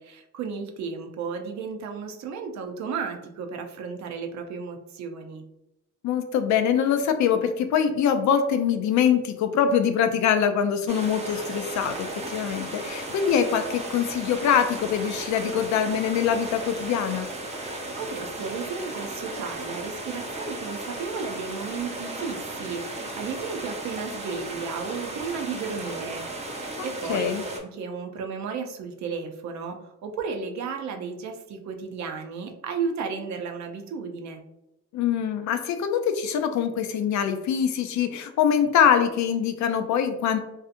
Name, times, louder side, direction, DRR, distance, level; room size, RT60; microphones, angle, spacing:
voice 1, 0.0-5.4 17.7-26.5 26.8-27.3 27.6-34.4, right 5 dB, 65° right, 4 dB, 0.5 m, -34 dB
voice 2, 6.0-17.3 26.8-27.4 34.9-40.4, left 8 dB, 70° left, 8 dB, 0.4 m, -24 dB
sound 1, 10.9-27.6, right 2 dB, 20° right, 0.6 m, -35 dB
2.7 x 2.4 x 2.4 m, 0.89 s
cardioid pair, 90°, 30 cm